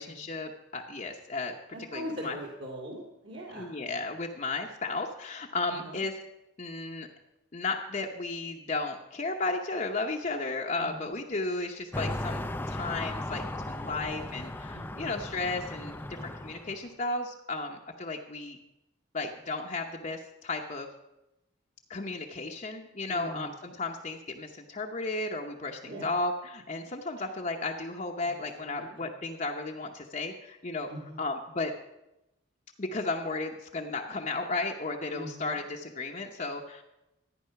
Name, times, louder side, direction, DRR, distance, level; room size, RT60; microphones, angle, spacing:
voice 1, 0.0-1.5 1.9-2.4 3.5-6.1 6.6-7.1 7.5-16.0 16.2-18.6 19.1-20.9 21.9-30.9 31.2-31.7 32.8-36.8, left 3 dB, 35° left, 1 dB, 0.8 m, -34 dB
voice 2, 1.7-3.7 5.7-6.0 10.8-11.1 14.7-15.1 23.1-23.5 25.9-26.1 28.2-28.4 28.7-29.1 30.9-31.2 35.1-35.6, equal, 55° right, -1 dB, 2.1 m, -41 dB
sound 1, 11.9-16.8, left 1 dB, 10° left, 0.4 m, -36 dB
14.0 x 9.7 x 5.8 m, 0.91 s
head